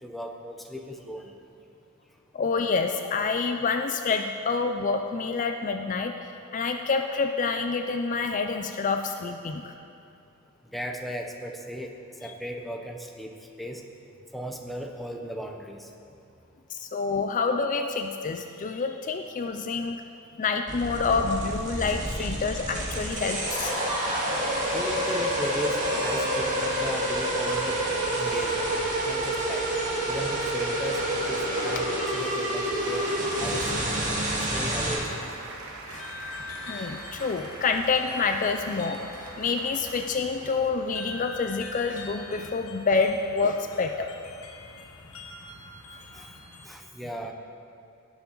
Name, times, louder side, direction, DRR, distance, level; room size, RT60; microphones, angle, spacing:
voice 1, 0.0-1.3 10.7-11.9 12.2-13.8 14.3-15.9 22.2-22.4 23.7-24.3 24.7-28.8 29.0-29.7 30.0-33.1 33.4-33.7 34.5-35.1 40.5-40.6 46.1-46.3 46.6-47.3, equal, ahead, 2 dB, 0.7 m, -36 dB
voice 2, 2.3-6.2 6.5-9.7 16.7-20.0 20.4-23.7 35.9-36.1 36.7-44.1, left 4 dB, 40° left, 5 dB, 0.4 m, -27 dB
sound 1, 20.7-35.0, right 1 dB, 40° right, 2.0 m, -28 dB
Applause, 31.7-42.3, right 2 dB, 80° right, 1.2 m, -44 dB
sound 2, 35.9-46.7, left 3 dB, 85° left, 1.2 m, -44 dB
18.0 x 7.1 x 3.9 m, 2.6 s
head